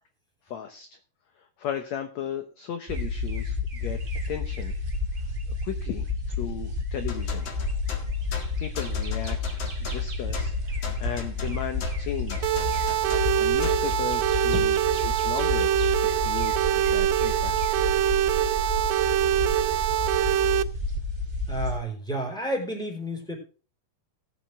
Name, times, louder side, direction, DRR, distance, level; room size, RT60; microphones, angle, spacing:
voice 1, 0.5-0.9 1.6-4.0 4.3-4.7 5.6-7.5 8.6-9.4 9.8-12.6 13.1-14.7 15.0-15.7 16.2-17.8, left 9 dB, 70° left, 7 dB, 1.8 m, -35 dB
sound 1, 2.9-21.8, left 2 dB, 55° right, 0.5 m, -30 dB
sound 2, 7.1-13.9, left 5 dB, 50° left, 2.5 m, -39 dB
sound 3, 12.4-20.6, right 11 dB, 75° right, 2.3 m, -24 dB
voice 2, 21.5-23.4, right 1 dB, ahead, 1 dB, 3.8 m, -31 dB
18.5 x 7.5 x 3.3 m, 0.36 s
omnidirectional pair, 4.3 m